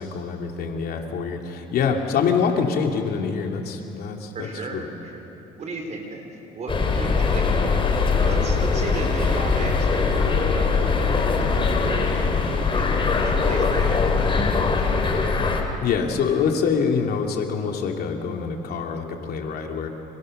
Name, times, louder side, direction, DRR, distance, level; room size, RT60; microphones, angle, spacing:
voice 1, 0.0-4.8 15.8-19.9, left 6 dB, 65° left, 2 dB, 3.1 m, -25 dB
voice 2, 4.3-5.1 5.6-7.5 8.2-14.6, right 3 dB, 45° right, 3 dB, 5.3 m, -35 dB
sound 1, 6.7-15.6, left 4 dB, 30° left, 3.7 m, -21 dB
29.5 x 26.5 x 6.8 m, 2.9 s
cardioid pair, 110°, 17 cm